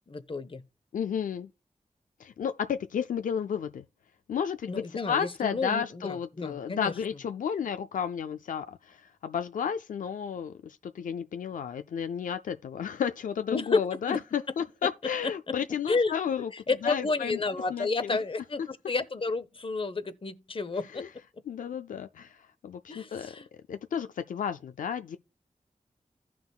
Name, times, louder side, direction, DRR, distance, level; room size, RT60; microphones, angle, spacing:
voice 1, 0.1-0.6 4.7-6.9 13.5-14.2 15.2-15.3 15.9-16.1 16.5-21.0 22.9-23.5, left 3 dB, 40° left, 0.8 m, -31 dB
voice 2, 0.9-1.5 2.2-3.8 4.3-16.5 16.8-17.4 17.7-18.2 20.9-21.1 21.5-25.2, left 7 dB, 90° left, 0.4 m, -32 dB
14.5 x 5.9 x 2.3 m
cardioid pair, 45°, 13 cm